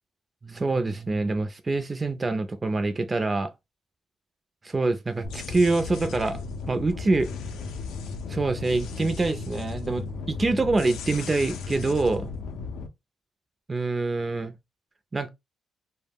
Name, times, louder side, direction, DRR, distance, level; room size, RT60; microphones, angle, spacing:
voice 1, 0.4-3.5 4.6-6.4 6.7-7.3 8.3-12.3 13.7-14.5 15.1-15.3, right 3 dB, 25° right, 0.3 m, -25 dB
sound 1, 5.2-12.9, left 4 dB, 85° left, 0.4 m, -35 dB
2.2 x 2.0 x 3.4 m
cardioid pair, 90°, 0 cm